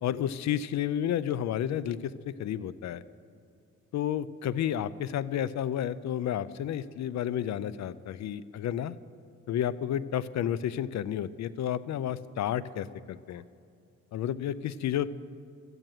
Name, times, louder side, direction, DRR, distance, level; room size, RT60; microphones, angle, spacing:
voice 1, 0.0-3.0 3.9-9.0 9.5-13.4 14.1-15.1, left 10 dB, 65° left, 17 dB, 0.6 m, -31 dB
14.0 x 9.0 x 9.2 m, 2.5 s
cardioid pair, 90°, 30 cm